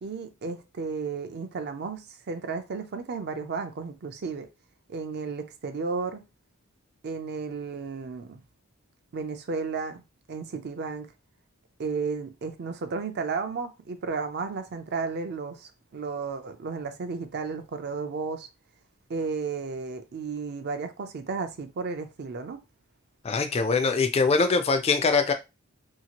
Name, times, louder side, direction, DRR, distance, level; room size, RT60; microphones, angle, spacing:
voice 1, 0.0-4.5 4.9-6.2 7.0-8.4 9.1-10.0 10.3-11.1 11.8-18.5 19.1-22.6, right 4 dB, 50° right, 0.4 m, -33 dB
voice 2, 23.2-25.3, left 4 dB, 30° left, 0.3 m, -23 dB
2.8 x 2.4 x 2.8 m
head